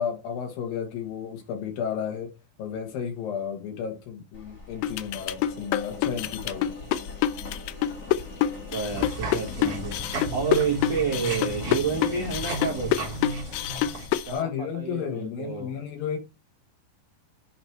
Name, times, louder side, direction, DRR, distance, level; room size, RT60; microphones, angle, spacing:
voice 1, 0.0-2.3 2.6-6.7 14.3-16.2, left 8 dB, 70° left, 2.9 m, -32 dB
Engine, 4.3-14.3, left 3 dB, 35° left, 1.2 m, -41 dB
sound 1, 4.8-14.3, left 11 dB, 90° left, 2.0 m, -26 dB
voice 2, 8.7-9.9 10.3-12.9 14.2-15.8, right 6 dB, 85° right, 1.0 m, -29 dB
sound 2, 8.9-14.1, right 1 dB, 50° right, 1.1 m, -35 dB
8.5 x 3.0 x 4.5 m
omnidirectional pair, 4.6 m